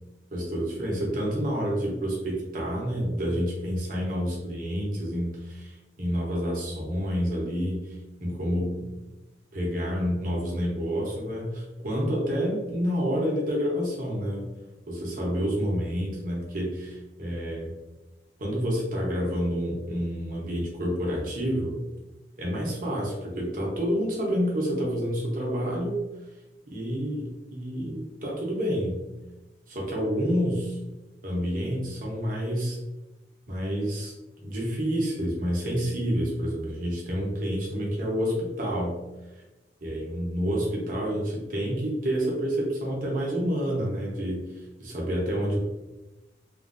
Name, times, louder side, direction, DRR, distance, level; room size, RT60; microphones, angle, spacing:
voice 1, 0.3-7.9 8.2-8.9 9.5-14.4 14.9-17.8 18.4-21.8 22.4-26.0 26.7-29.1 29.7-30.8 31.2-32.8 33.5-34.1 34.4-39.0 39.8-44.5 44.8-45.6, equal, 50° right, -3 dB, 0.9 m, -28 dB
3.3 x 2.5 x 2.5 m, 1.1 s
head